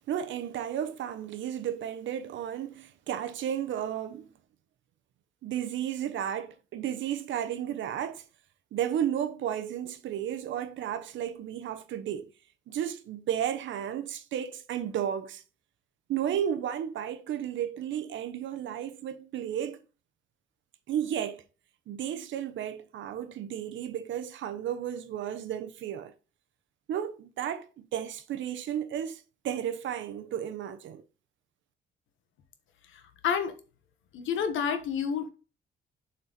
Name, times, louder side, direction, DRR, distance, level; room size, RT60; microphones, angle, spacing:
voice 1, 0.1-4.3 5.4-8.2 8.7-12.3 12.7-15.4 16.1-19.8 20.9-21.4 21.9-26.1 26.9-31.0, right 10 dB, 75° right, 0.9 m, -33 dB
voice 2, 32.9-33.5 34.1-35.3, left 7 dB, 85° left, 1.4 m, -29 dB
7.6 x 4.4 x 4.0 m
cardioid pair, 150°, 20 cm